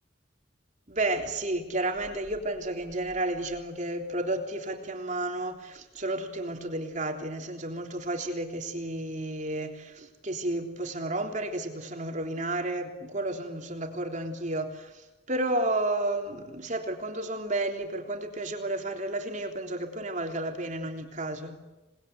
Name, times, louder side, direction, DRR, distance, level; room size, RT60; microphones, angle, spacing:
voice 1, 0.9-21.6, right 2 dB, 40° right, 3 dB, 3.5 m, -32 dB
28.5 x 20.5 x 9.5 m, 1.1 s
head